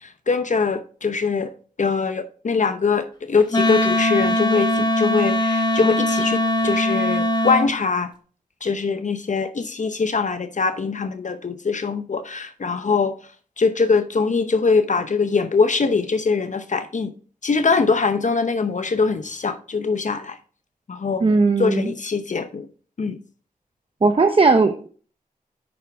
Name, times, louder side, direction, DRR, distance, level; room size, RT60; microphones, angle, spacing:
voice 1, 0.0-1.5 1.8-8.1 8.6-13.1 13.6-17.1 17.4-20.4 20.9-21.2 21.6-22.7 23.0-23.2, left 4 dB, 55° left, 0.7 m, -22 dB
Wind instrument woodwind instrument, 3.5-7.7, left 1 dB, 30° left, 1.6 m, -21 dB
voice 2, 21.2-21.9 24.0-24.9, right 3 dB, 35° right, 0.7 m, -17 dB
8.6 x 5.8 x 3.4 m
cardioid pair, 45°, 15 cm